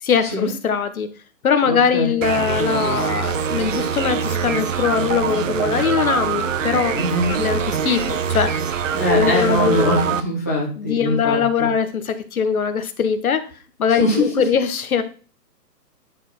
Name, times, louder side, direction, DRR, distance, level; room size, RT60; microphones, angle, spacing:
voice 1, 0.0-1.1 1.4-6.9 7.4-8.5 9.1-10.0 10.8-13.4 13.8-15.0, left 7 dB, 60° left, 10 dB, 1.2 m, -21 dB
voice 2, 1.6-2.2 6.9-7.4 8.9-11.7 13.9-14.4, equal, 10° left, -6 dB, 0.5 m, -22 dB
sound 1, 2.2-10.2, right 7 dB, 50° right, 0.8 m, -24 dB
9.7 x 4.5 x 4.3 m, 0.38 s
hypercardioid pair, 160°, 49 cm